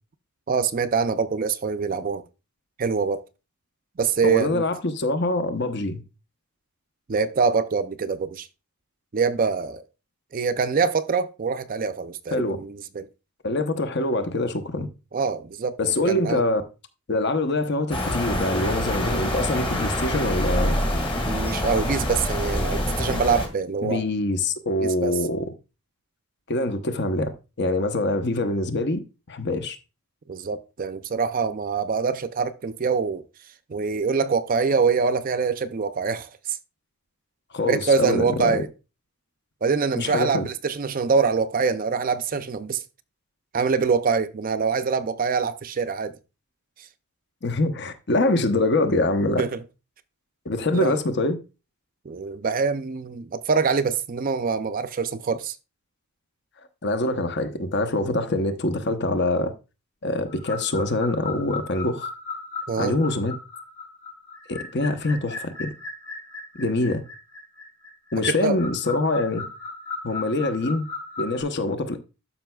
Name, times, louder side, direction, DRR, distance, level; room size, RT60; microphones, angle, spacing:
voice 1, 0.5-2.2 2.8-3.2 4.0-4.6 7.1-8.5 9.1-9.8 10.3-13.1 15.1-16.4 21.2-24.0 24.8-25.1 30.3-33.2 33.7-36.6 37.6-38.7 39.6-42.8 43.5-46.1 49.4-49.6 50.7-51.0 52.1-55.6 62.7-63.0 68.3-68.6, right 5 dB, 40° right, 0.5 m, -24 dB
voice 2, 4.2-6.0 12.3-12.6 13.4-14.9 15.8-16.6 17.1-20.8 23.8-25.5 26.5-29.0 29.3-29.8 37.5-38.6 39.9-40.5 47.4-49.4 50.4-51.4 56.8-59.5 60.0-62.1 62.8-63.3 64.5-65.7 66.5-67.0 68.1-69.4 70.0-70.8 71.2-72.0, left 2 dB, 50° left, 0.9 m, -24 dB
sound 1, 17.9-23.5, left 1 dB, 25° left, 1.8 m, -26 dB
sound 2, 60.3-71.4, left 4 dB, 85° left, 2.4 m, -37 dB
12.0 x 5.7 x 2.3 m
head